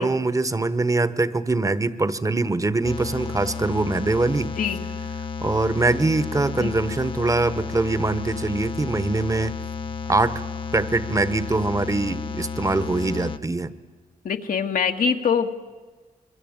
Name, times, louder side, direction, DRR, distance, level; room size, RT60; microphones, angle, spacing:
voice 1, 0.0-4.5 5.4-9.5 10.1-10.4 10.7-13.7, right 3 dB, 25° right, 15 dB, 1.2 m, -23 dB
sound 1, 2.8-13.4, left 6 dB, 35° left, 0.9 m, -32 dB
voice 2, 4.6-4.9 6.6-6.7 14.2-15.6, left 6 dB, 75° left, 6 dB, 1.8 m, -24 dB
26.0 x 23.0 x 8.9 m, 1.3 s
cardioid pair, 95°, 14 cm